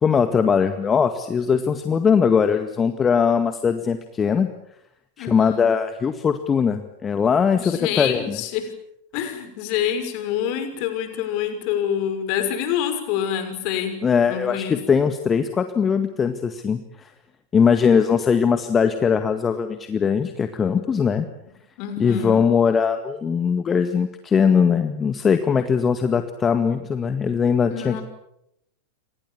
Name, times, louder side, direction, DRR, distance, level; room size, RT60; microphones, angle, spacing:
voice 1, 0.0-4.5 5.2-8.4 14.0-17.1 17.5-21.3 22.0-28.0, left 6 dB, 20° left, 8 dB, 1.9 m, -20 dB
voice 2, 5.2-5.6 7.6-8.7 9.1-14.0 14.3-14.8 21.8-22.4 27.7-28.0, left 9 dB, 45° left, 8 dB, 6.0 m, -26 dB
30.0 x 25.0 x 7.3 m, 0.79 s
figure-of-eight pair, 90°, 0 cm